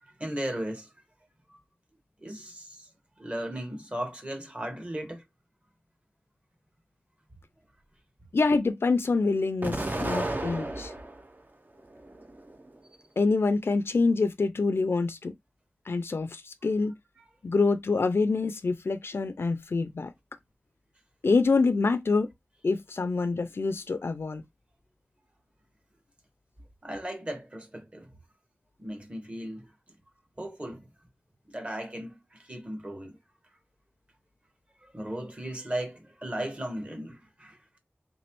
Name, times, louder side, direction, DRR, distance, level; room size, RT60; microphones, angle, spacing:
voice 1, 0.0-0.9 2.2-2.9 3.2-5.2 26.8-28.1 28.8-29.7 30.4-30.9 31.5-33.2 34.8-37.6, right 1 dB, 25° right, 1.2 m, -36 dB
voice 2, 8.3-10.9 13.2-15.3 15.9-16.9 17.4-20.1 21.2-22.3 22.6-24.4, left 3 dB, 65° left, 0.4 m, -26 dB
Explosion, 9.6-11.3 11.8-12.7, right 1 dB, 45° right, 0.7 m, -33 dB
3.4 x 3.0 x 3.0 m
wide cardioid pair, 55°, 4 cm